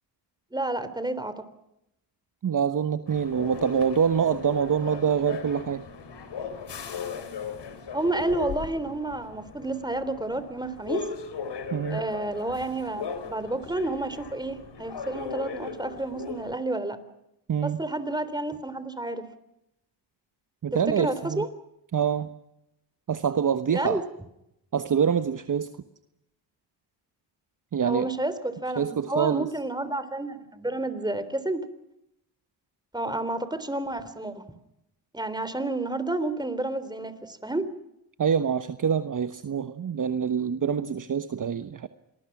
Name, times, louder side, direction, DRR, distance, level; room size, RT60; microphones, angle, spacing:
voice 1, 0.5-1.3 7.9-11.1 11.9-17.0 17.6-19.2 20.7-21.5 23.7-24.0 27.8-31.6 32.9-34.4 35.1-37.7, right 2 dB, 10° right, 12 dB, 3.5 m, -30 dB
voice 2, 2.4-5.8 11.7-12.0 17.5-17.8 20.6-21.4 21.9-22.3 23.1-24.0 24.7-25.7 27.7-28.1 28.8-29.5 38.2-41.9, right 7 dB, 40° right, 10 dB, 1.2 m, -25 dB
sound 1, 3.1-16.6, left 6 dB, 60° left, 4.3 m, -38 dB
27.0 x 21.0 x 6.1 m, 0.84 s
cardioid pair, 70°, 47 cm